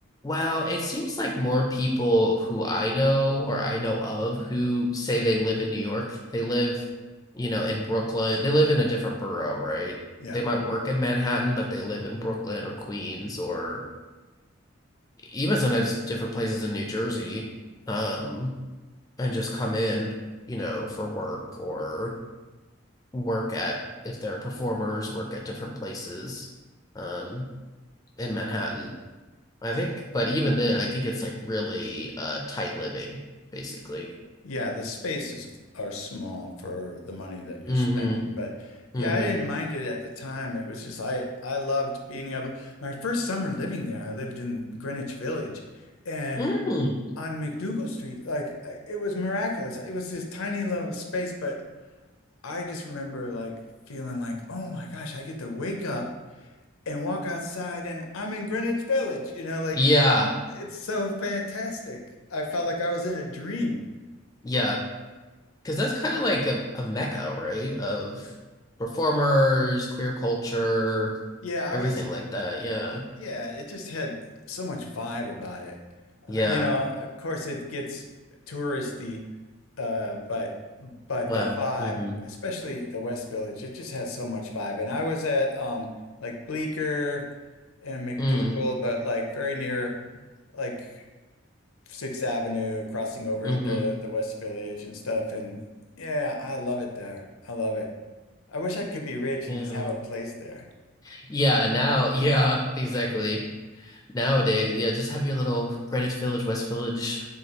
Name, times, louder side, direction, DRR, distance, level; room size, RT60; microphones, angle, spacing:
voice 1, 0.2-6.8 7.3-10.0 10.3-13.8 15.3-17.4 17.9-18.5 19.2-20.1 20.5-22.1 23.1-23.8 24.0-26.5 27.0-27.5 28.2-28.9 29.6-33.2 33.5-34.1 37.6-38.2 38.9-39.3 46.4-46.9 59.7-60.3 64.4-64.8 65.6-68.3 68.8-71.1 71.7-73.0 76.3-76.7 81.3-82.2 88.2-88.6 93.4-93.8 99.5-99.9 101.0-103.4 103.8-107.3, equal, 15° left, 0 dB, 0.4 m, -26 dB
voice 2, 34.4-35.5 35.7-45.5 46.1-46.5 47.2-51.5 52.4-53.5 53.9-56.0 56.4-56.5 56.9-59.8 60.5-62.0 62.3-63.8 71.4-72.0 73.2-74.2 74.5-75.8 76.2-78.0 78.5-79.2 79.8-80.5 80.8-85.9 86.2-87.2 87.8-89.9 90.5-91.0 91.9-95.6 96.0-97.9 98.5-100.6, left 2 dB, 85° left, 2 dB, 0.6 m, -31 dB
6.4 x 2.3 x 2.9 m, 1.2 s
head